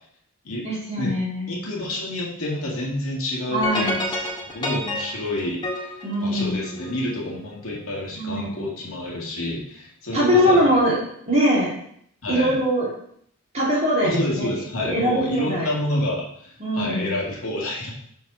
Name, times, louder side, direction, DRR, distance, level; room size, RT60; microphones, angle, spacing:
voice 1, 0.6-1.5 3.5-4.0 6.0-6.6 8.1-8.6 10.1-11.0 11.2-11.7 12.3-12.9 13.5-14.5 14.8-15.7 16.6-17.1, equal, 30° right, -7 dB, 3.4 m, -22 dB
voice 2, 1.5-4.2 4.5-10.7 12.2-12.5 14.0-17.9, left 1 dB, 65° left, -3 dB, 2.0 m, -28 dB
sound 1, 3.6-7.0, left 1 dB, 20° left, 1.9 m, -29 dB
6.3 x 4.5 x 6.0 m, 0.67 s
head